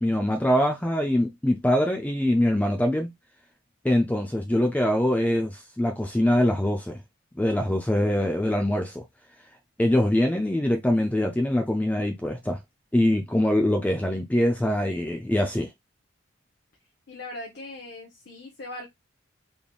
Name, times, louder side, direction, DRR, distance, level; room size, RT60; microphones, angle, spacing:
voice 1, 0.0-3.1 3.8-7.0 7.4-9.0 9.8-12.6 12.9-15.7, left 1 dB, 5° left, 0.4 m, -23 dB
voice 2, 17.1-18.9, left 2 dB, 55° left, 0.9 m, -39 dB
3.8 x 3.5 x 2.3 m
head